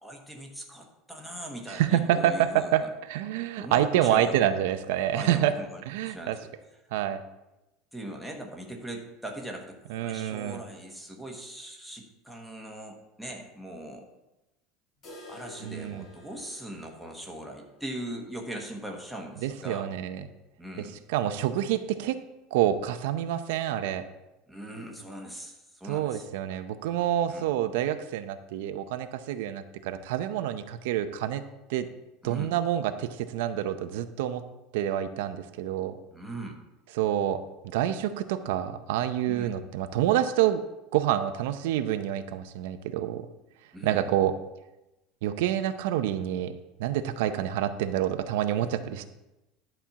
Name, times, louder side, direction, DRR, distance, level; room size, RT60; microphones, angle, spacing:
voice 1, 0.0-2.7 3.6-4.4 5.1-6.5 7.9-14.0 15.3-19.9 20.6-21.0 24.5-26.3 27.3-27.4 32.2-32.5 36.1-36.6 39.3-39.5 43.7-44.1, right 1 dB, ahead, 2 dB, 1.2 m, -40 dB
voice 2, 1.7-2.8 3.1-5.5 5.9-6.4 6.9-7.2 9.9-10.6 15.6-16.1 19.4-20.2 20.8-22.2 22.5-24.1 25.9-31.4 31.7-31.9 32.2-34.4 34.7-36.0 36.9-40.6 40.9-43.3 43.8-44.4 45.2-49.1, right 11 dB, 75° right, 10 dB, 0.6 m, -27 dB
sound 1, 15.0-20.8 21.1-21.2 21.6-21.7 22.2-22.3 23.2-23.3, left 1 dB, 30° left, 1.6 m, -52 dB
11.0 x 4.4 x 7.1 m, 0.97 s
cardioid pair, 170°, 0 cm